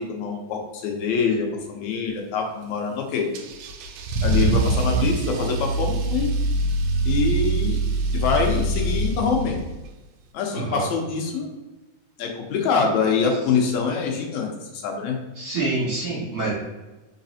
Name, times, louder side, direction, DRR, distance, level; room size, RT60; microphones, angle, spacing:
voice 1, 0.0-3.3 4.2-6.3 7.1-7.8 8.1-9.6 10.3-11.5 12.2-15.2, left 5 dB, 75° left, 2 dB, 2.0 m, -25 dB
Car / Engine starting / Accelerating revving vroom, 3.3-9.8, right 2 dB, 80° right, 1.6 m, -24 dB
voice 2, 10.5-10.8 15.4-16.5, right 3 dB, 40° right, -8 dB, 1.6 m, -26 dB
4.4 x 4.0 x 2.7 m, 1.1 s
omnidirectional pair, 3.4 m